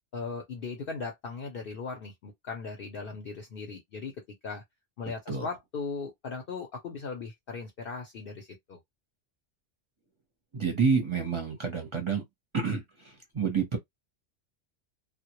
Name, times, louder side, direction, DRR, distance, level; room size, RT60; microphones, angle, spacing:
voice 1, 0.1-4.1 4.4-4.6 5.0-8.8, left 4 dB, 60° left, 0.7 m, -38 dB
voice 2, 10.5-12.2 12.5-13.8, right 5 dB, 30° right, 0.6 m, -28 dB
2.1 x 2.1 x 2.8 m
omnidirectional pair, 1.2 m